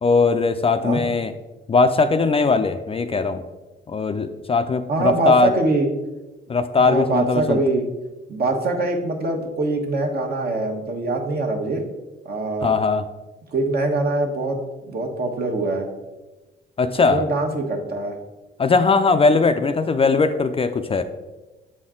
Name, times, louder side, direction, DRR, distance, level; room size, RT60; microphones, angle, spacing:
voice 1, 0.0-1.3 1.7-3.4 3.9-5.5 6.5-7.6 12.6-13.0 16.8-17.2 18.6-21.0, left 4 dB, 30° left, 9 dB, 0.4 m, -19 dB
voice 2, 4.9-5.9 6.8-7.9 8.3-11.8 12.2-12.7 13.5-14.6 14.8-15.9 17.1-18.1, right 2 dB, 50° right, 3 dB, 1.2 m, -23 dB
7.5 x 4.2 x 3.7 m, 1.1 s
cardioid pair, 90°, 20 cm